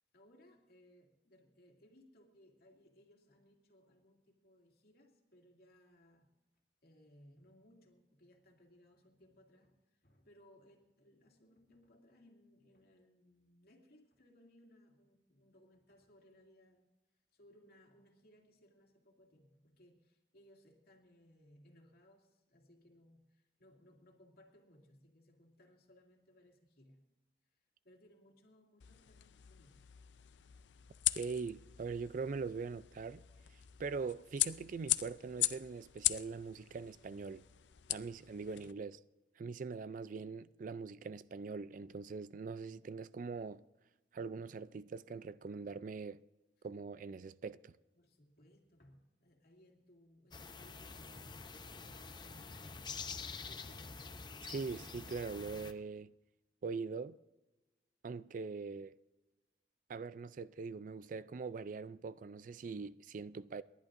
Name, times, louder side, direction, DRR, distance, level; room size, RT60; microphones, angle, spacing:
voice 1, 0.0-6.3 6.8-16.9 17.3-27.1 27.5-29.9 38.4-38.7 46.6-46.7 47.9-51.1 51.8-53.0 53.3-54.0, left 1 dB, 60° left, 2.5 m, -65 dB
sound 1, 28.8-38.7, left 15 dB, 85° left, 0.5 m, -40 dB
voice 2, 31.2-33.2 33.8-37.4 37.9-39.0 39.4-43.6 44.1-46.2 46.6-47.7 54.4-56.1 56.6-57.2 58.0-59.0 59.9-63.6, right 4 dB, 45° right, 0.4 m, -42 dB
sound 2, 50.3-55.7, left 4 dB, 25° left, 0.7 m, -47 dB
29.5 x 11.5 x 2.6 m
head